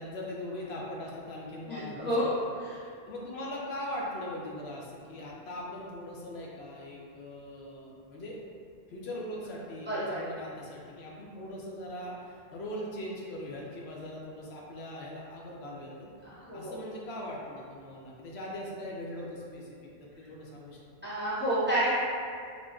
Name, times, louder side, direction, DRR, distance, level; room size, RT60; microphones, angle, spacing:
voice 1, 0.0-2.3 2.7-8.4 8.9-16.1 16.5-19.7 20.0-20.8, left 1 dB, 80° left, -4 dB, 0.8 m, -40 dB
voice 2, 1.7-2.3 2.6-2.7 9.9-10.3 16.2-16.8 21.0-21.9, right 1 dB, 10° right, -13 dB, 0.9 m, -30 dB
3.4 x 2.6 x 2.3 m, 2.3 s
omnidirectional pair, 1.1 m